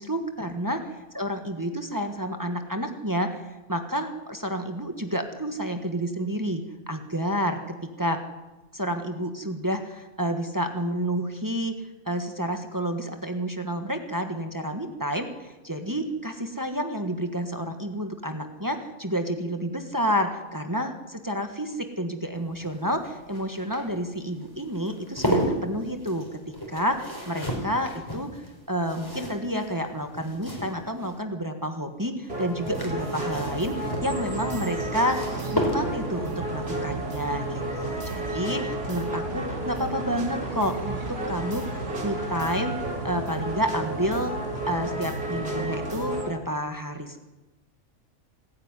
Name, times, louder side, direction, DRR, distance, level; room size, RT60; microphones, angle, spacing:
voice 1, 0.0-0.8 1.1-8.2 8.7-11.8 12.0-26.4 26.7-28.4 28.7-42.7 43.0-44.4 44.7-47.2, equal, 15° right, 5 dB, 1.6 m, -30 dB
sound 1, 22.4-31.2 32.3-36.2 37.9-38.2 38.4-38.5, equal, 15° left, 4.4 m, -33 dB
sound 2, 32.3-46.3, right 1 dB, 50° right, 3.8 m, -33 dB
sound 3, 32.5-46.2, right 2 dB, 65° right, 2.7 m, -36 dB
26.0 x 10.0 x 9.9 m, 1.1 s
omnidirectional pair, 1.4 m